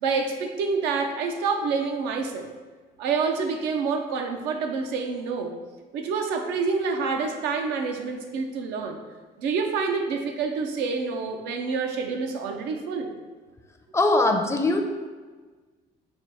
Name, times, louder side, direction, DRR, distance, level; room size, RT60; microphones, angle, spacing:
voice 1, 0.0-2.5 3.0-5.5 5.9-9.0 9.4-13.1, right 5 dB, 90° right, 4 dB, 0.6 m, -27 dB
voice 2, 13.9-14.8, left 2 dB, 15° left, 4 dB, 0.4 m, -21 dB
4.4 x 2.2 x 4.7 m, 1.4 s
cardioid pair, 110°, 17 cm